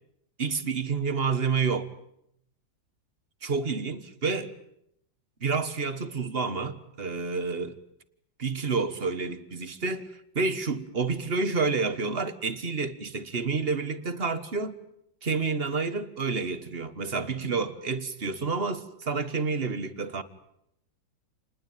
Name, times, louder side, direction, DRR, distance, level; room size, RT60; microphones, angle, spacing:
voice 1, 0.4-1.9 3.4-4.5 5.4-7.8 8.4-14.7 15.2-20.2, right 4 dB, 35° right, 1.6 m, -29 dB
29.0 x 20.0 x 9.3 m
omnidirectional pair, 2.1 m